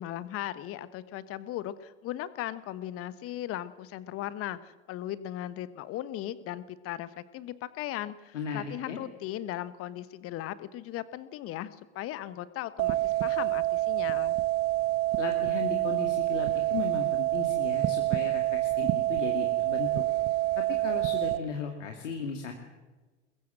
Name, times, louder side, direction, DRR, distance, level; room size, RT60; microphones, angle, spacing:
voice 1, 0.0-14.4, left 13 dB, 35° left, 15 dB, 1.2 m, -37 dB
voice 2, 8.3-9.0 15.2-20.0 20.6-22.5, left 5 dB, 70° left, 3 dB, 2.6 m, -36 dB
sound 1, 12.8-21.4, right 16 dB, 35° right, 1.3 m, -27 dB
21.5 x 21.0 x 7.7 m, 1.2 s
figure-of-eight pair, 85°, 37 cm